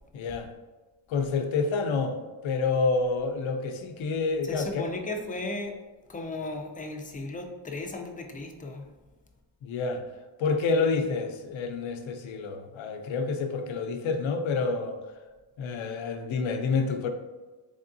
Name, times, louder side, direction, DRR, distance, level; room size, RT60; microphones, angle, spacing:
voice 1, 0.1-0.5 1.1-4.9 9.6-10.0 10.4-15.0 15.6-17.1, left 4 dB, 70° left, 6 dB, 0.6 m, -28 dB
voice 2, 4.4-5.7 6.1-8.9 10.7-11.0, left 2 dB, 20° left, 2 dB, 0.4 m, -36 dB
3.6 x 3.4 x 2.6 m, 1.2 s
cardioid pair, 105°, 49 cm